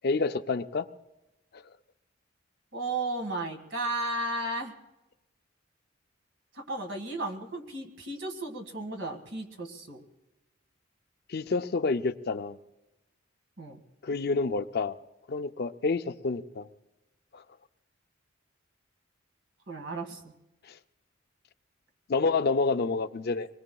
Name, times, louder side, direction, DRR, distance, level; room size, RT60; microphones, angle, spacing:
voice 1, 0.0-0.9 1.5-1.6 11.3-12.6 14.0-15.0 15.3-16.7 17.3-17.4 20.7-20.8 22.1-23.5, left 4 dB, 50° left, 10 dB, 0.5 m, -28 dB
voice 2, 2.7-4.7 6.5-10.0 13.6-13.8 19.7-20.3, right 2 dB, 65° right, 3 dB, 1.9 m, -34 dB
26.0 x 21.0 x 2.3 m, 1.0 s
head